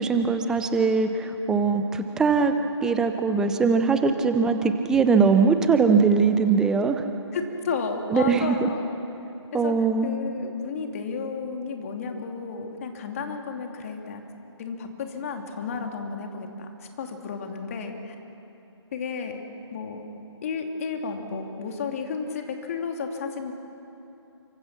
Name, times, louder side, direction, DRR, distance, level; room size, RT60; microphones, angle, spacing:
voice 1, 0.0-2.5 2.8-7.0 8.1-8.7 9.5-10.2, right 5 dB, 5° right, 8 dB, 0.6 m, -21 dB
voice 2, 7.3-8.9 9.5-9.7 10.0-14.2 14.6-16.7 17.0-18.1 18.9-19.4 19.7-20.1 20.4-23.5, left 5 dB, 30° left, 3 dB, 2.9 m, -32 dB
29.5 x 25.0 x 6.1 m, 2.9 s
figure-of-eight pair, 145°, 15 cm